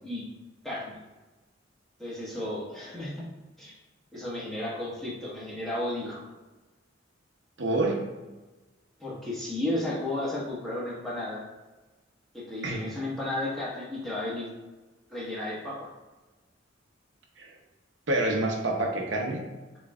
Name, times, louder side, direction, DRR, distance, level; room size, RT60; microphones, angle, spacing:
voice 1, 0.6-1.0 2.0-3.2 3.6-3.7 4.1-6.3 9.0-11.4 12.3-14.5 15.1-15.9, left 1 dB, ahead, -8 dB, 1.4 m, -33 dB
voice 2, 7.6-8.0 12.6-12.8 17.4-17.5 18.1-19.4, right 2 dB, 70° right, 0 dB, 0.8 m, -27 dB
6.9 x 3.1 x 2.4 m, 1.2 s
head